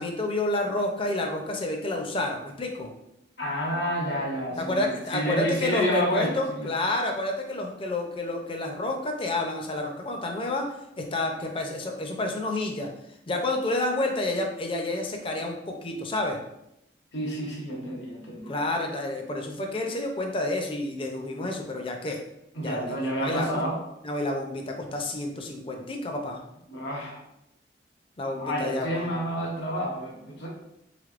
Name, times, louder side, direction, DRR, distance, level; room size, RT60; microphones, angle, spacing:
voice 1, 0.0-2.9 4.6-12.9 13.3-16.4 18.5-22.2 22.6-23.5 24.0-26.4 28.2-29.1, left 2 dB, 30° left, 2 dB, 0.5 m, -29 dB
voice 2, 3.4-6.7 17.1-18.5 22.5-23.8 26.7-27.2 28.3-30.5, equal, 85° left, -2 dB, 1.0 m, -29 dB
3.5 x 3.4 x 2.4 m, 0.82 s
head